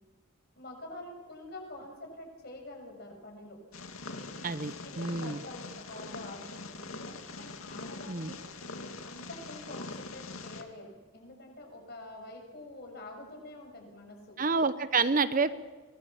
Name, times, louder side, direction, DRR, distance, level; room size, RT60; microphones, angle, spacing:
voice 1, 0.5-3.6 4.8-8.4 9.0-14.4 15.3-15.5, left 2 dB, 50° left, 2 dB, 6.7 m, -46 dB
Purr, 3.7-10.6, left 3 dB, 90° left, 2.3 m, -43 dB
voice 2, 4.4-5.4 8.1-8.3 14.4-15.5, right 4 dB, 40° right, 13 dB, 0.8 m, -28 dB
24.5 x 20.5 x 7.3 m, 1.4 s
head